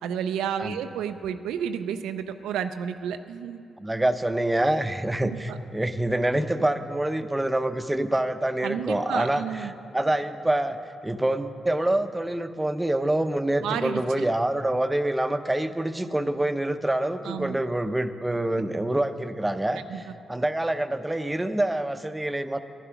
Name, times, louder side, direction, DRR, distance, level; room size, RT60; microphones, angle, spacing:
voice 1, 0.0-3.6 5.2-5.6 8.6-9.7 13.6-14.3 17.3-17.6 19.9-20.0, right 8 dB, 85° right, 9 dB, 0.4 m, -31 dB
voice 2, 3.8-22.6, right 1 dB, 15° right, 10 dB, 0.6 m, -26 dB
11.0 x 10.0 x 5.8 m, 2.5 s
supercardioid pair, 50°, 0 cm